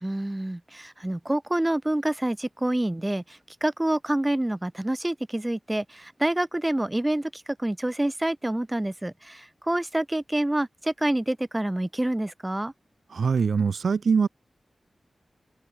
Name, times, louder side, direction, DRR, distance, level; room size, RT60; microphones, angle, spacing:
voice 1, 0.0-12.7, right 1 dB, 15° right, 0.9 m, -27 dB
voice 2, 13.1-14.3, right 5 dB, 85° right, 1.9 m, -23 dB
open air
wide cardioid pair, 70°, 0 cm